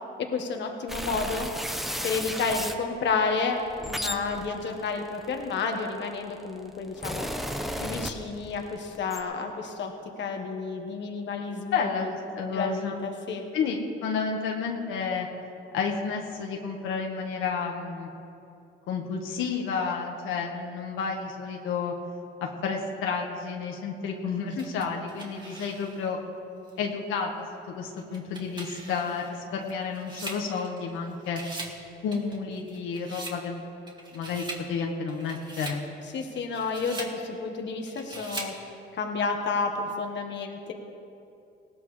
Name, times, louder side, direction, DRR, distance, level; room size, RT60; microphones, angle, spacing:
voice 1, 0.3-1.5 2.0-7.3 7.8-9.9 10.2-13.4 24.6-24.7 36.1-38.5 38.9-40.7, left 4 dB, 65° left, 3 dB, 1.5 m, -31 dB
sound 1, 0.9-2.8 3.5-5.9 6.6-8.6 8.9-9.2, equal, ahead, 1.1 m, -34 dB
voice 2, 11.7-13.0 13.5-15.3 15.7-18.1 18.9-21.9 22.4-26.2 26.8-31.4 32.0-33.6 34.1-35.8, left 5 dB, 90° left, 1 dB, 1.5 m, -31 dB
sound 2, 24.6-26.1 26.7-26.8 28.0-31.0 31.2-31.8 32.1-33.4 33.9-34.7 35.1-35.8 36.4-37.2 37.9-38.6, right 2 dB, 20° right, 2.3 m, -41 dB
19.5 x 16.5 x 3.3 m, 2.7 s
cardioid pair, 90°, 20 cm